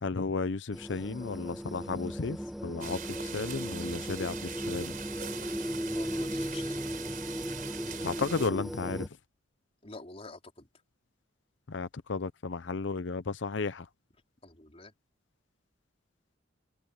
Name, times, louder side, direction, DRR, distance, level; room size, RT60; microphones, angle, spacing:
voice 1, 0.0-5.0 8.0-9.2 11.7-13.9, left 4 dB, 65° left, 0.7 m, -34 dB
sound 1, 0.7-9.1, equal, ahead, 1.7 m, -37 dB
sound 2, 2.8-8.5, right 8 dB, 45° right, 3.9 m, -42 dB
voice 2, 5.9-6.9 9.8-10.7 14.4-14.9, left 2 dB, 30° left, 4.6 m, -47 dB
head